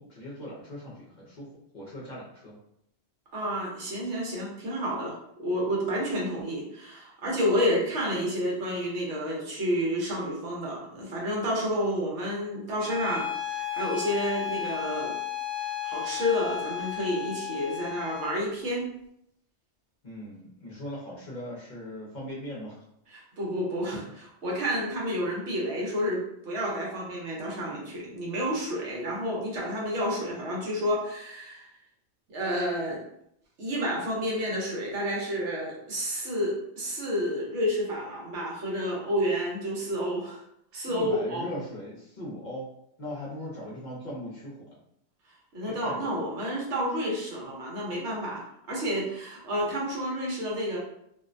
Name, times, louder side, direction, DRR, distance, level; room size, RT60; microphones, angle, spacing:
voice 1, 0.0-1.5 1.7-2.6 20.0-22.8 40.8-42.7 43.0-44.8 45.7-46.2, equal, 50° left, -6 dB, 0.7 m, -39 dB
voice 2, 3.3-15.1 15.6-18.8 23.1-31.7 32.3-33.0 33.6-40.4 40.7-41.5 45.5-50.8, equal, 75° right, -3 dB, 1.1 m, -30 dB
Bowed string instrument, 12.8-18.4, left 10 dB, ahead, 0.3 m, -34 dB
2.6 x 2.1 x 2.5 m, 0.75 s
omnidirectional pair, 1.2 m